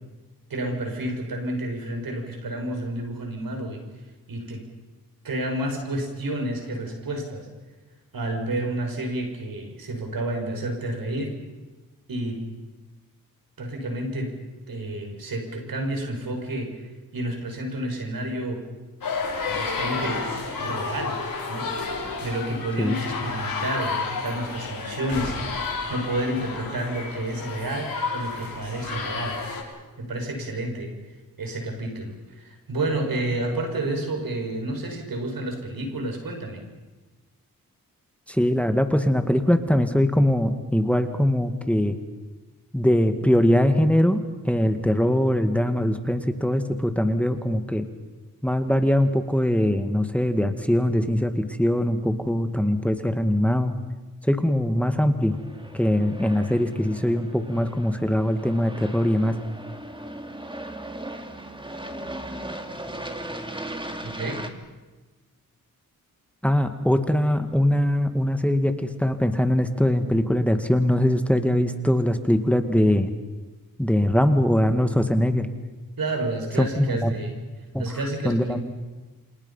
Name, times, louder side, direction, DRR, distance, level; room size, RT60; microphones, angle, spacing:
voice 1, 0.5-3.8 4.3-4.6 5.2-7.5 8.1-11.4 12.1-12.4 13.6-14.3 14.7-16.8 17.1-18.6 19.5-20.2 20.6-21.2 21.5-21.7 22.2-29.4 30.0-30.9 31.4-36.6 64.0-64.4 76.0-77.3 77.8-78.6, right 1 dB, 75° right, 3 dB, 6.2 m, -30 dB
sound 1, 19.0-29.6, left 4 dB, 70° left, 7.1 m, -31 dB
voice 2, 38.3-42.0 42.7-47.9 48.4-53.7 54.2-55.4 55.7-59.4 66.4-73.1 73.8-75.5 76.6-77.2 77.7-77.8 78.2-78.6, left 1 dB, 5° left, 7 dB, 2.1 m, -22 dB
Aircraft, 55.3-64.5, right 1 dB, 15° right, 2.9 m, -37 dB
28.5 x 26.5 x 5.7 m, 1.2 s
cardioid pair, 60°, 35 cm